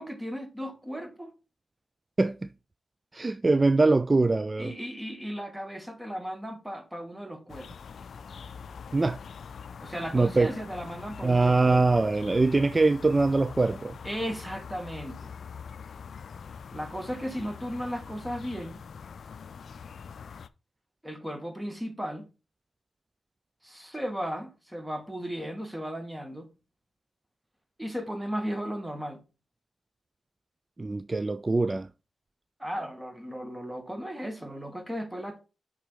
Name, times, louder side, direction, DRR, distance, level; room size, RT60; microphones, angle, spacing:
voice 1, 0.0-1.3 4.6-7.7 9.8-12.0 14.0-15.3 16.7-18.8 21.0-22.3 23.6-26.5 27.8-29.2 32.6-35.4, equal, 10° right, 1.9 m, -36 dB
voice 2, 2.2-2.5 3.1-4.7 8.9-9.2 10.1-10.5 11.2-14.0 30.8-31.9, right 3 dB, 35° right, 0.3 m, -23 dB
sound 1, 7.5-20.5, left 6 dB, 70° left, 0.4 m, -43 dB
6.1 x 3.8 x 5.0 m
supercardioid pair, 40°, 0 cm